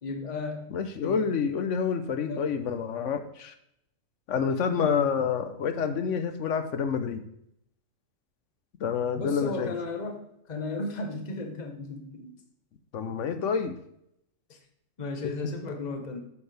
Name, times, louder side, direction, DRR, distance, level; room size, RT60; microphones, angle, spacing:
voice 1, 0.0-0.7 1.0-1.2 2.2-2.5 9.1-10.2 10.5-12.3 15.0-16.2, left 3 dB, 35° left, 4 dB, 1.1 m, -34 dB
voice 2, 0.7-3.5 4.3-7.2 8.8-9.7 12.9-13.8, left 6 dB, 65° left, 9 dB, 1.1 m, -28 dB
8.2 x 7.2 x 3.4 m, 0.76 s
omnidirectional pair, 1.4 m